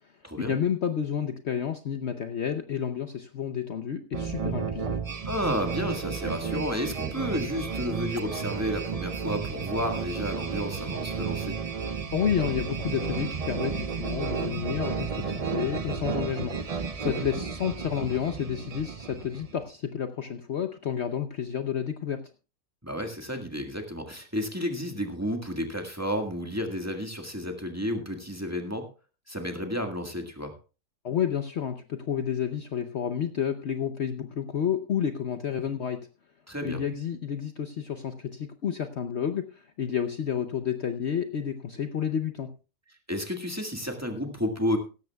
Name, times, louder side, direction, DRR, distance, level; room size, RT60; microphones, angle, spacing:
voice 1, 0.4-5.0 12.1-16.6 17.0-22.2 31.0-36.0 36.6-42.5, left 8 dB, 55° left, 8 dB, 0.9 m, -30 dB
sound 1, 4.1-19.6, right 6 dB, 40° right, 0.5 m, -32 dB
voice 2, 5.2-11.6 17.0-17.2 22.8-28.9 29.3-30.5 36.5-36.8 43.1-44.8, equal, 10° right, 3 dB, 1.6 m, -31 dB
17.0 x 13.5 x 2.3 m, 0.32 s
omnidirectional pair, 1.6 m